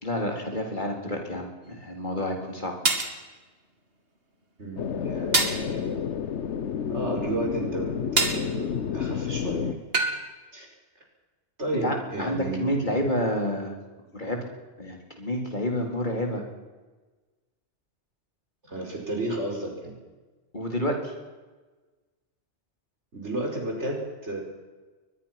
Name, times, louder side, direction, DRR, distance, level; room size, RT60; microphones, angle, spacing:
voice 1, 0.0-2.7 11.8-13.7 14.1-14.4 14.8-16.4 20.5-21.1, left 1 dB, 45° left, 2 dB, 4.0 m, -29 dB
sound 1, 1.7-1.8 2.9-3.2 5.3-5.6 8.2-8.5 9.9-10.2, right 3 dB, 60° right, 2.6 m, -23 dB
voice 2, 4.6-5.9 6.9-8.7 8.9-9.8 10.5-10.7 11.6-13.1 18.7-19.9 23.1-24.4, right 1 dB, 90° right, 1 dB, 5.4 m, -32 dB
sound 2, 4.8-9.7, left 8 dB, 85° left, 1.2 m, -30 dB
22.5 x 21.0 x 5.9 m, 1.2 s
omnidirectional pair, 1.1 m